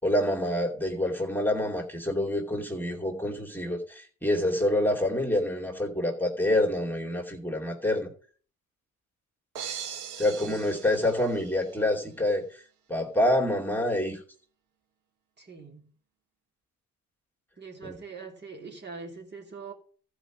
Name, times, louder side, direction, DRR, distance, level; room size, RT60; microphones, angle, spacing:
voice 1, 0.0-8.1 10.2-12.6 12.9-14.2 17.8-18.0, left 1 dB, 5° left, 2.8 m, -27 dB
sound 1, 9.5-11.8, right 8 dB, 90° right, 1.5 m, -40 dB
voice 2, 10.4-10.8 15.4-15.9 17.6-19.7, right 4 dB, 35° right, 3.1 m, -43 dB
14.0 x 5.1 x 6.0 m
cardioid pair, 90°, 30 cm